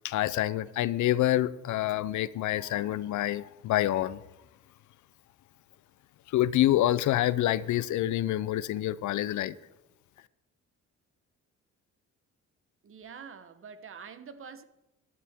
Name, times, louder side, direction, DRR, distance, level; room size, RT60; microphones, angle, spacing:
voice 1, 0.0-4.2 6.3-9.5, left 14 dB, 75° left, 0.6 m, -27 dB
voice 2, 12.8-14.6, right 6 dB, 45° right, 1.0 m, -46 dB
15.5 x 11.5 x 3.6 m
cardioid pair, 90°, 30 cm